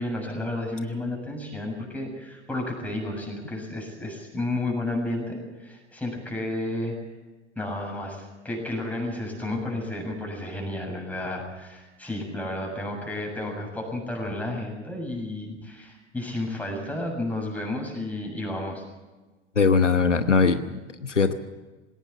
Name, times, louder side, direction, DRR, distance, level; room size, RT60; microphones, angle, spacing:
voice 1, 0.0-6.9 7.6-18.8, left 1 dB, 5° left, 1 dB, 7.2 m, -32 dB
voice 2, 19.6-21.3, left 4 dB, 85° left, 10 dB, 1.1 m, -21 dB
20.5 x 18.0 x 7.2 m, 1.2 s
figure-of-eight pair, 85°, 35 cm